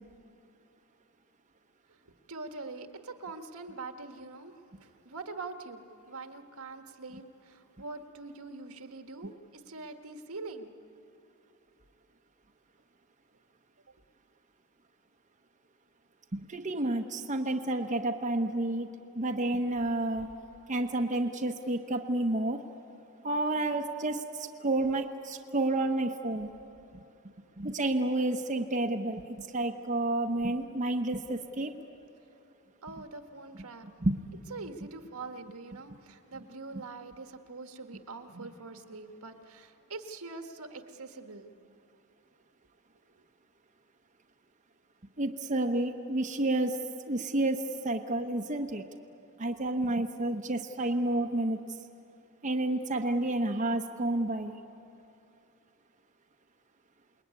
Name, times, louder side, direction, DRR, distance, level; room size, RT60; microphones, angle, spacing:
voice 1, 2.3-4.5 4.8-10.7 32.8-33.9 34.5-41.5, right 3 dB, 75° right, 7 dB, 1.6 m, -44 dB
voice 2, 16.3-18.9 19.1-20.3 20.7-22.6 23.2-26.5 26.9-27.0 27.6-31.7 34.0-34.2 45.2-46.8 47.1-48.8 49.4-51.6 52.4-54.6, right 2 dB, 35° right, 3 dB, 1.0 m, -30 dB
28.0 x 21.0 x 9.6 m, 2.8 s
head